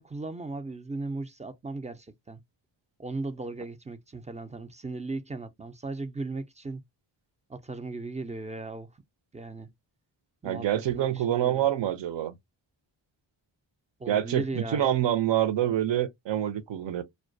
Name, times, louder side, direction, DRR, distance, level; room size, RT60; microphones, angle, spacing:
voice 1, 0.0-2.4 3.0-6.8 7.5-8.9 9.3-9.7 10.4-11.7 14.0-14.9, right 3 dB, 15° right, 0.3 m, -37 dB
voice 2, 10.4-12.4 14.1-17.0, right 11 dB, 65° right, 0.6 m, -26 dB
2.2 x 2.2 x 2.5 m
cardioid pair, 55°, 47 cm